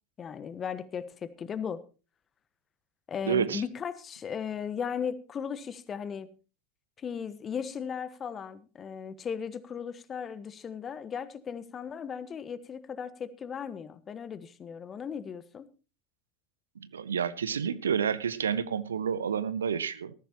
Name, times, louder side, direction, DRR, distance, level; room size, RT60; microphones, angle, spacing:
voice 1, 0.2-1.8 3.1-6.3 7.0-15.7, left 7 dB, 30° left, 1.4 m, -36 dB
voice 2, 3.3-3.6 16.8-20.1, right 7 dB, 75° right, 0.7 m, -29 dB
18.5 x 14.0 x 3.0 m
figure-of-eight pair, 75°, 0 cm